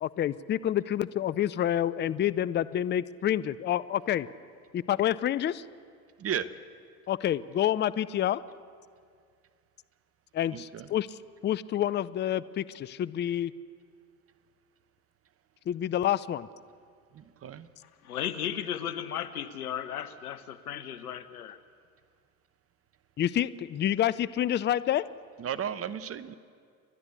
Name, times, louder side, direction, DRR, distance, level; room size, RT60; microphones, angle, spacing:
voice 1, 0.0-4.3 4.7-5.6 7.1-8.4 10.3-13.5 15.7-16.5 23.2-25.0, left 11 dB, 25° left, 17 dB, 0.5 m, -28 dB
voice 2, 6.2-6.5 10.5-10.9 17.1-17.7 25.4-26.3, right 8 dB, 30° right, 15 dB, 1.0 m, -34 dB
voice 3, 18.0-21.6, left 9 dB, 90° left, 13 dB, 1.1 m, -35 dB
29.5 x 11.5 x 8.4 m, 2.1 s
hypercardioid pair, 80°, 43 cm